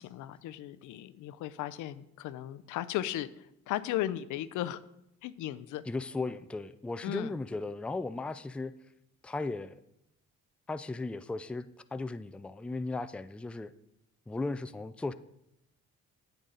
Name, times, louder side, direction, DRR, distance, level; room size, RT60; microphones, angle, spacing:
voice 1, 0.0-3.3 3.7-4.8 5.2-5.8 7.0-7.3, left 13 dB, 85° left, 0.5 m, -36 dB
voice 2, 5.9-8.7 9.2-9.7 10.7-13.7 14.3-15.1, left 3 dB, 5° left, 0.3 m, -36 dB
8.9 x 8.1 x 3.8 m
cardioid pair, 90°, 30 cm